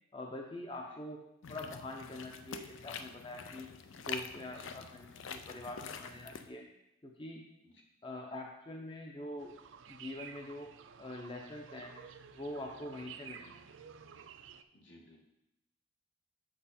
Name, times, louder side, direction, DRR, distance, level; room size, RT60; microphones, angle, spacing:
voice 1, 0.1-1.2 1.5-3.7 4.1-6.6 7.0-7.4 8.0-9.5 9.9-10.7 11.0-11.9 12.3-13.6, left 1 dB, 25° left, 1 dB, 0.6 m, -44 dB
sound 1, 1.4-6.5, left 6 dB, 85° left, 0.5 m, -45 dB
sound 2, 9.4-14.6, right 7 dB, 80° right, 0.5 m, -52 dB
voice 2, 14.7-15.2, left 1 dB, 70° left, 0 dB, 1.7 m, -59 dB
7.7 x 6.4 x 4.2 m, 0.84 s
head